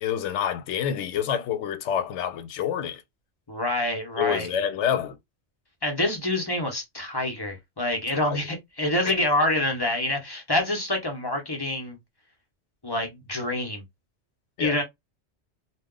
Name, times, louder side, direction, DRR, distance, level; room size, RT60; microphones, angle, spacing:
voice 1, 0.0-3.0 4.2-5.2 8.2-8.4 9.1-9.2 14.6-14.8, left 9 dB, 85° left, 0.9 m, -27 dB
voice 2, 3.5-4.5 5.8-12.0 12.8-13.8 14.6-14.8, left 1 dB, 25° left, 0.7 m, -26 dB
2.2 x 2.1 x 3.7 m
omnidirectional pair, 1.2 m